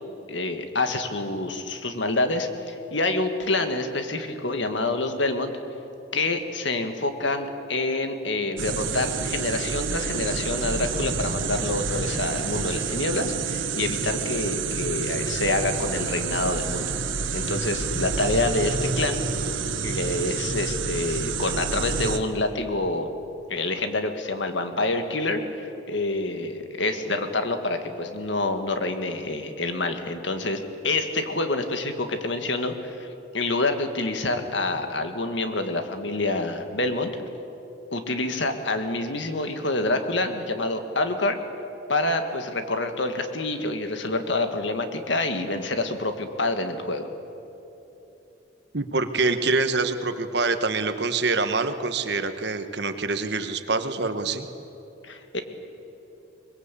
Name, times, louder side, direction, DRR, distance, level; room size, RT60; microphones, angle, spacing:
voice 1, 0.3-5.5 6.1-16.9 17.3-19.2 19.8-23.1 23.5-33.1 33.3-37.1 37.9-41.4 41.9-47.1 55.0-55.4, left 2 dB, 70° left, 7 dB, 1.9 m, -27 dB
sound 1, 8.6-22.2, right 5 dB, 80° right, 1.5 m, -28 dB
voice 2, 48.7-54.5, right 3 dB, 55° right, 9 dB, 1.3 m, -25 dB
23.0 x 21.5 x 8.4 m, 3.0 s
head